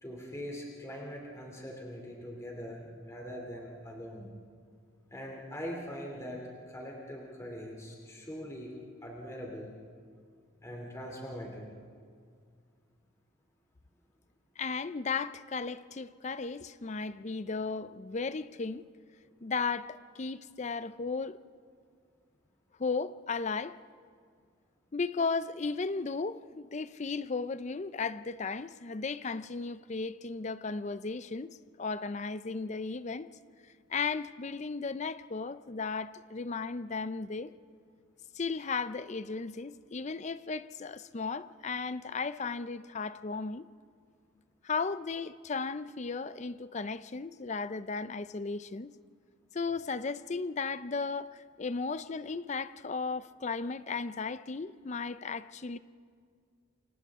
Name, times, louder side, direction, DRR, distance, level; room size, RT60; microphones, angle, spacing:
voice 1, 0.0-4.3 5.1-6.4 6.7-8.8 9.0-9.7 10.6-11.7, equal, 15° left, 2.7 m, -42 dB
voice 2, 14.6-18.8 19.4-21.4 22.8-23.8 24.9-31.5 31.8-33.3 33.9-37.5 38.3-43.6 44.6-48.9 49.5-55.8, left 4 dB, 35° left, 0.5 m, -35 dB
29.0 x 25.0 x 3.6 m
head